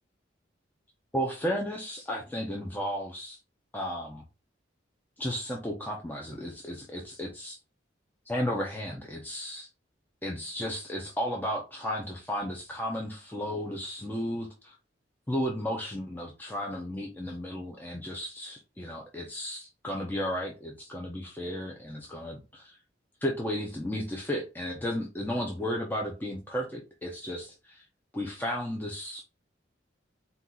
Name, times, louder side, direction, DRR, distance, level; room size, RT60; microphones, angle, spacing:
voice 1, 1.1-3.4 3.7-4.2 5.2-7.6 8.3-9.7 10.2-14.8 15.3-22.8 23.2-27.8 28.1-29.2, equal, 10° left, 0.7 m, -34 dB
4.3 x 2.5 x 3.9 m
head